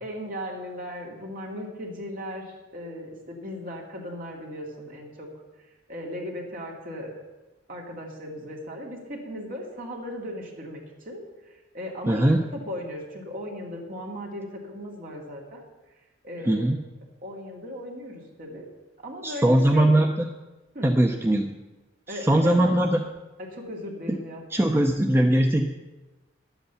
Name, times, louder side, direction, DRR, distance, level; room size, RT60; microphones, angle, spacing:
voice 1, 0.0-5.3 5.9-7.1 7.7-15.6 16.2-16.7 17.2-18.7 19.0-20.0 20.7-20.9 22.1-22.9 23.4-24.4 24.7-24.8, equal, 45° right, -1 dB, 2.4 m, -37 dB
voice 2, 12.1-12.4 16.5-16.8 19.2-20.3 20.8-21.6 22.1-23.0 24.1-24.2 24.5-25.7, right 1 dB, 15° right, 3 dB, 0.5 m, -21 dB
10.5 x 8.1 x 6.9 m, 1.1 s
head